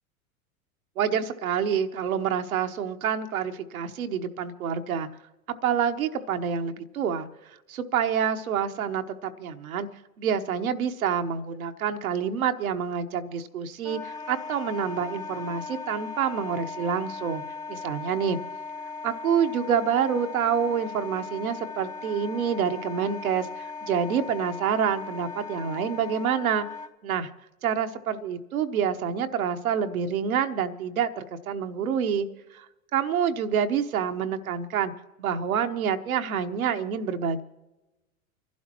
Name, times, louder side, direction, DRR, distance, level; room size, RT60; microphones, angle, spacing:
voice 1, 1.0-5.1 5.6-7.3 7.9-9.9 10.2-17.4 17.7-18.4 19.0-26.7 27.0-27.3 27.6-32.3 32.5-32.6 32.9-34.9 35.2-37.4, right 7 dB, 80° right, 8 dB, 1.1 m, -27 dB
Wind instrument woodwind instrument, 13.8-26.9, left 4 dB, 20° left, 0.6 m, -38 dB
29.5 x 12.0 x 3.0 m, 1.0 s
hypercardioid pair, 100°, 42 cm